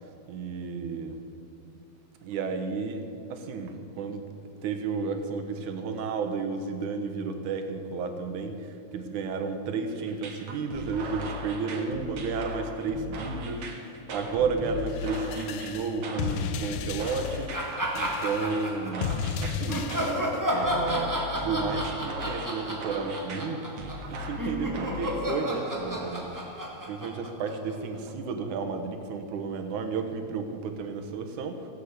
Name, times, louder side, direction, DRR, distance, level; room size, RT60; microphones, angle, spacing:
voice 1, 0.3-1.2 2.2-4.2 4.6-19.1 19.4-19.9 20.5-23.6 24.1-26.3 26.9-31.7, right 5 dB, 85° right, 6 dB, 2.6 m, -32 dB
sound 1, 10.1-25.2, equal, 55° right, 2.4 m, -38 dB
sound 2, 14.8-20.4, left 7 dB, 80° left, 1.3 m, -34 dB
sound 3, 17.5-19.2 19.7-27.9, equal, 30° right, 0.3 m, -32 dB
16.0 x 7.9 x 8.2 m, 2.7 s
omnidirectional pair, 3.4 m